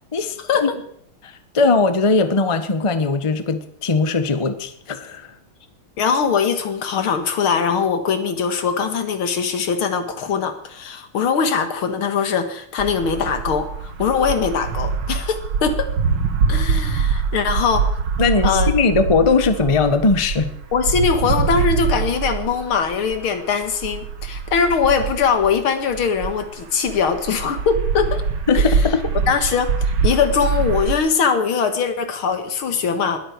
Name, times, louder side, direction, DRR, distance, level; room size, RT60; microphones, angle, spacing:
voice 1, 0.1-0.7 1.2-5.3 18.2-20.5 28.5-29.1, left 4 dB, 20° left, 10 dB, 0.8 m, -19 dB
voice 2, 6.0-15.9 16.5-17.9 18.4-18.7 20.7-28.2 28.5-28.8 29.3-29.7 30.0-33.2, left 6 dB, 80° left, 8 dB, 2.4 m, -21 dB
sound 1, 12.8-26.6 26.9-30.9, right 5 dB, 70° right, 2.2 m, -24 dB
19.5 x 13.5 x 4.7 m, 0.66 s
omnidirectional pair, 2.3 m